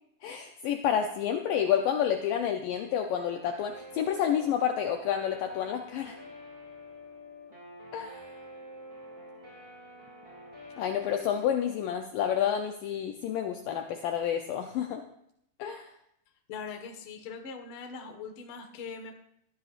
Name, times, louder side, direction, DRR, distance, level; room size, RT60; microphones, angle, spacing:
voice 1, 0.2-6.2 7.9-8.3 10.8-15.0 15.6-15.9, left 9 dB, 90° left, 4 dB, 1.9 m, -29 dB
Guitar, 3.2-11.9, equal, 10° right, 4.6 m, -48 dB
voice 2, 16.5-19.1, left 5 dB, 65° left, 3 dB, 1.3 m, -41 dB
19.5 x 13.0 x 2.5 m, 0.75 s
omnidirectional pair, 4.9 m